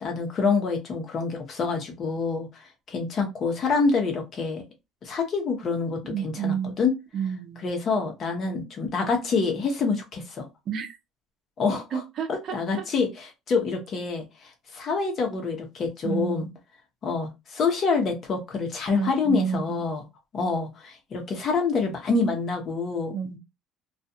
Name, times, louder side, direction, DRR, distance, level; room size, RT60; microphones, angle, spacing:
voice 1, 0.0-4.6 5.0-6.9 7.6-10.5 11.6-12.0 12.3-16.5 17.0-20.0 20.3-23.1, left 4 dB, 45° left, 1.0 m, -27 dB
voice 2, 6.1-6.7 7.1-7.7 10.7-11.0 11.9-12.9 16.0-16.5 18.9-19.9 23.1-23.4, right 7 dB, 50° right, 0.7 m, -30 dB
2.5 x 2.3 x 2.7 m
cardioid pair, 115°, 0 cm